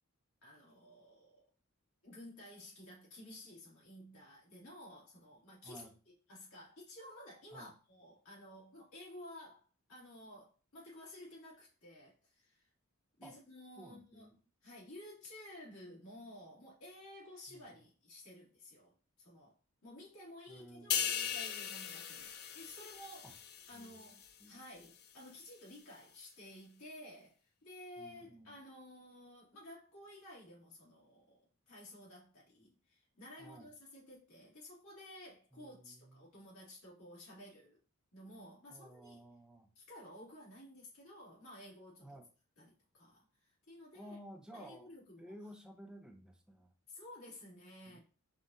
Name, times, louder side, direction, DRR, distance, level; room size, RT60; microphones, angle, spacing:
voice 1, 0.4-1.4 2.0-5.9 6.3-12.7 13.2-14.3 14.6-19.6 19.8-23.3 23.7-31.4 31.7-37.8 38.1-39.2 39.8-42.1 42.6-44.2 44.5-45.3 46.9-48.0, left 1 dB, 80° left, 2.1 m, -54 dB
voice 2, 5.6-5.9 7.5-7.7 13.2-13.4 13.8-14.3 17.5-17.8 20.5-21.4 23.2-23.4 23.7-24.1 24.4-24.6 28.0-28.6 33.4-33.7 35.5-36.3 38.7-39.7 42.0-42.3 43.9-46.7 47.8-48.0, equal, 5° right, 0.5 m, -54 dB
sound 1, 20.9-24.4 24.8-25.0, left 8 dB, 50° left, 0.4 m, -39 dB
5.2 x 2.5 x 2.7 m
head